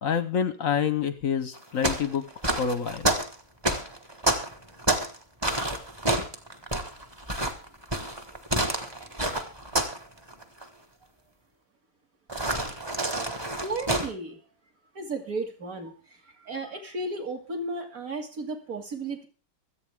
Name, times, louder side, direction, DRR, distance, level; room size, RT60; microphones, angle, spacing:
voice 1, 0.0-2.3 2.6-3.1, left 7 dB, 55° left, 13 dB, 1.0 m, -27 dB
sound 1, 1.5-5.2 5.4-10.0 10.3-10.6 12.3-14.1, right 1 dB, 15° right, 1.3 m, -28 dB
voice 2, 13.6-14.4 14.9-15.9 16.3-19.3, right 2 dB, 45° right, 3 dB, 2.8 m, -34 dB
25.5 x 8.5 x 3.6 m, 0.34 s
omnidirectional pair, 2.1 m